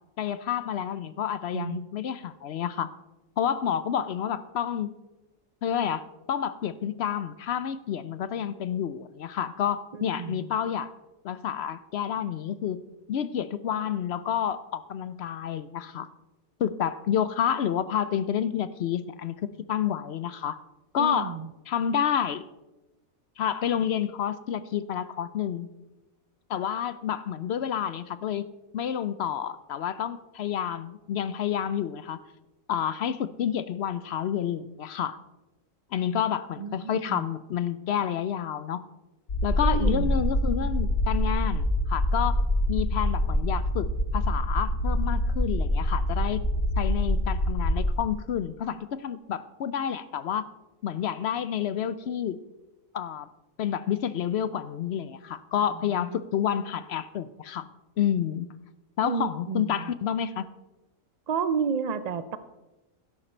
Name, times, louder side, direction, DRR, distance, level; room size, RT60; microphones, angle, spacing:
voice 1, 0.2-2.9 3.4-5.0 5.6-10.9 11.2-12.8 13.1-16.1 16.6-19.4 19.7-20.6 20.9-21.4 21.7-22.5 23.4-25.7 26.5-28.5 28.7-32.2 32.7-35.2 35.9-38.8 39.4-42.4 42.7-46.4 46.8-50.4 50.8-52.4 52.9-53.3 53.6-57.7 58.0-58.5 59.0-60.5, left 9 dB, 65° left, 15 dB, 0.7 m, -29 dB
voice 2, 9.9-10.5 21.0-21.5 36.1-36.2 36.6-37.2 39.6-40.2 56.0-56.2 59.0-59.9 61.3-62.4, right 6 dB, 80° right, 12 dB, 0.3 m, -31 dB
sound 1, 39.3-47.9, left 1 dB, 85° left, 2.5 m, -25 dB
12.5 x 11.0 x 4.4 m, 1.0 s
omnidirectional pair, 1.5 m